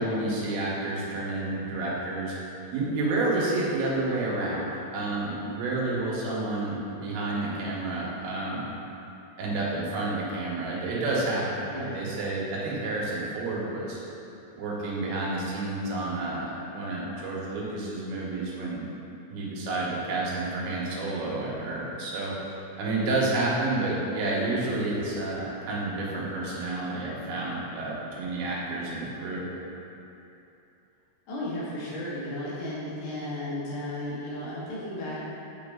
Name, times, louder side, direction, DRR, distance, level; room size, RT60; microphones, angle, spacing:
voice 1, 0.0-2.4 2.7-8.7 9.4-14.0 14.6-18.9 19.3-29.5, right 2 dB, 80° right, -5 dB, 3.5 m, -30 dB
voice 2, 11.7-12.0 31.3-35.2, left 1 dB, 75° left, -8 dB, 3.9 m, -34 dB
8.3 x 6.0 x 3.7 m, 2.9 s
omnidirectional pair, 5.2 m